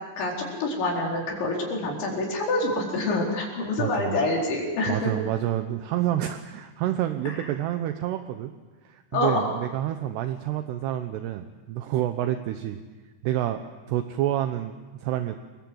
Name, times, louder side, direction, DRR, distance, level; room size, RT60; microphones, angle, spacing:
voice 1, 0.2-5.1 7.3-7.4 9.1-9.5, left 2 dB, 75° left, -1 dB, 6.7 m, -26 dB
voice 2, 3.8-4.2 4.9-8.5 8.8-12.8 13.2-13.6 13.9-15.4, right 12 dB, 75° right, 8 dB, 2.7 m, -28 dB
29.5 x 21.0 x 7.8 m, 1.3 s
omnidirectional pair, 5.3 m